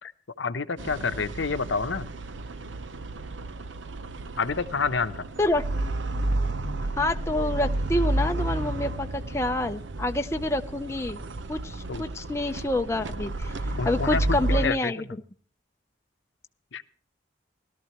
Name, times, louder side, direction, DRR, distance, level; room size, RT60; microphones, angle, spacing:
voice 1, 0.4-2.1 4.4-5.3 11.9-12.0 13.7-14.9 16.7-16.8, left 4 dB, 80° left, 11 dB, 0.8 m, -28 dB
sound 1, 0.8-14.7, right 2 dB, 80° right, 0.8 m, -31 dB
voice 2, 7.0-11.2 11.5-13.5 13.9-15.0, left 1 dB, 15° left, 5 dB, 0.6 m, -27 dB
17.5 x 12.5 x 3.0 m, 0.43 s
head